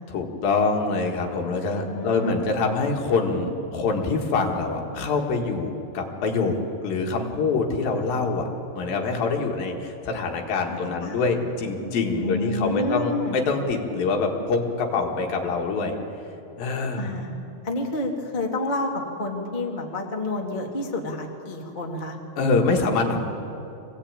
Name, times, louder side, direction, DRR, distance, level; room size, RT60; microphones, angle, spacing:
voice 1, 0.1-6.6 6.8-8.5 8.8-16.0 16.6-17.1 22.4-23.2, left 4 dB, 65° left, 2 dB, 3.4 m, -25 dB
voice 2, 1.7-2.4 10.7-11.4 12.2-13.4 17.0-17.3 17.6-22.2, left 2 dB, 30° left, 0 dB, 0.9 m, -29 dB
24.5 x 17.5 x 8.9 m, 2.8 s
omnidirectional pair, 4.7 m